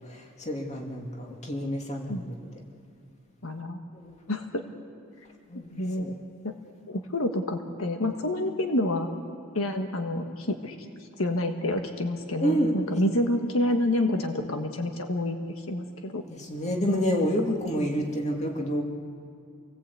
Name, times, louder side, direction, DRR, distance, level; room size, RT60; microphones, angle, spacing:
voice 1, 0.0-2.5 3.9-4.2 5.5-6.1 12.4-13.0 16.3-18.8, equal, 30° left, 1 dB, 2.4 m, -29 dB
voice 2, 3.4-3.8 4.3-4.6 5.8-6.1 6.4-6.5 6.9-9.1 9.5-10.7 11.2-15.4 15.7-16.2 16.9-17.0, left 1 dB, 75° left, 5 dB, 1.5 m, -28 dB
28.0 x 18.5 x 8.4 m, 2.4 s
head